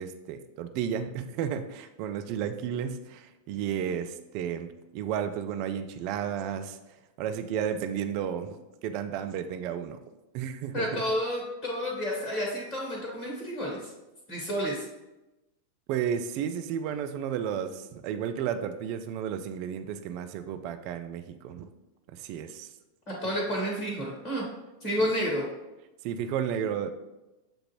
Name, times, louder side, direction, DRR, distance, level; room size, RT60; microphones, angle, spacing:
voice 1, 0.0-6.8 7.2-8.6 8.8-10.0 10.3-11.0 15.9-21.7 22.2-22.7 25.0-25.1 26.0-26.9, right 8 dB, 45° right, 8 dB, 0.3 m, -32 dB
voice 2, 10.7-13.9 14.3-14.8 23.2-24.4 24.8-25.4, equal, 30° left, -2 dB, 1.2 m, -30 dB
6.9 x 2.5 x 2.9 m, 1.0 s
figure-of-eight pair, 90°, 0 cm